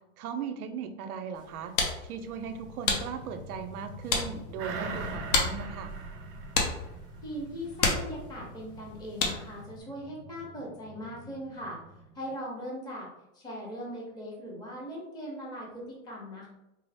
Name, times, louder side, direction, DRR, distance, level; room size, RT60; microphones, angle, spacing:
voice 1, 0.2-1.7 2.0-5.9, right 6 dB, 90° right, 7 dB, 0.6 m, -38 dB
sound 1, 1.3-9.6, left 3 dB, 60° left, 1.0 m, -33 dB
sound 2, 2.2-12.3, left 1 dB, 35° left, 1.2 m, -49 dB
sound 3, 4.6-7.5 7.9-8.0, right 3 dB, 30° right, 0.5 m, -39 dB
voice 2, 7.2-11.8 12.1-13.1 13.3-16.5, equal, 10° left, -3 dB, 0.7 m, -40 dB
4.5 x 2.0 x 3.4 m, 0.95 s
hypercardioid pair, 135°, 43 cm